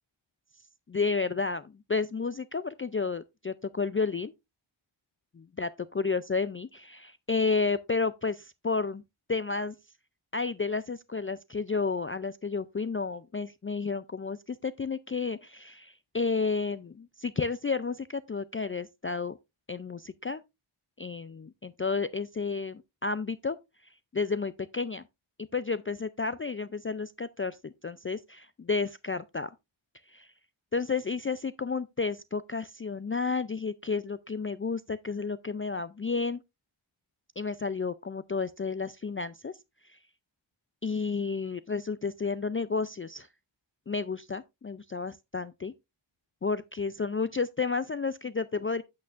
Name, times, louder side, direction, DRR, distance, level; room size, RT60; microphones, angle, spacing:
voice 1, 0.9-4.3 5.3-5.7 5.9-9.0 9.3-9.8 10.3-19.4 19.7-20.4 21.0-23.6 24.1-25.0 25.5-29.5 30.1-30.3 30.7-36.4 37.4-39.5 39.8-40.0 40.8-43.3 43.9-45.7 46.4-48.8, left 4 dB, 30° left, 0.3 m, -31 dB
8.5 x 8.3 x 2.5 m
wide cardioid pair, 70°, 49 cm